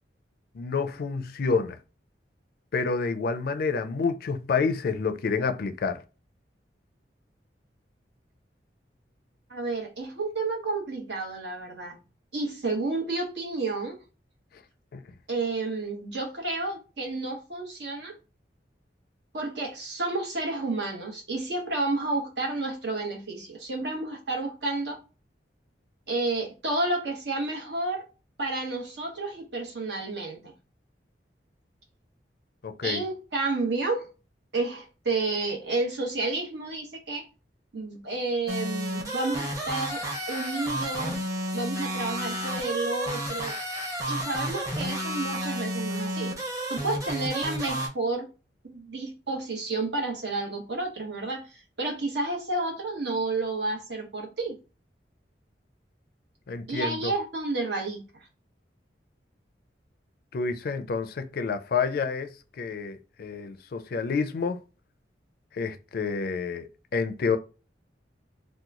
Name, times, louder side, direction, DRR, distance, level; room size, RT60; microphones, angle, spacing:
voice 1, 0.5-1.8 2.7-6.0 14.9-15.0 32.6-33.1 56.5-57.1 60.3-64.6 65.5-67.4, left 5 dB, 55° left, 0.4 m, -29 dB
voice 2, 9.5-12.0 12.3-14.0 15.3-18.2 19.3-25.0 26.1-28.0 28.4-30.5 32.8-34.1 34.5-37.2 37.7-41.2 41.5-43.6 44.1-46.3 46.7-48.3 48.6-54.6 56.7-58.0, right 2 dB, 70° right, 1.1 m, -31 dB
sound 1, 38.5-47.9, equal, 20° right, 0.9 m, -31 dB
2.9 x 2.2 x 3.6 m
head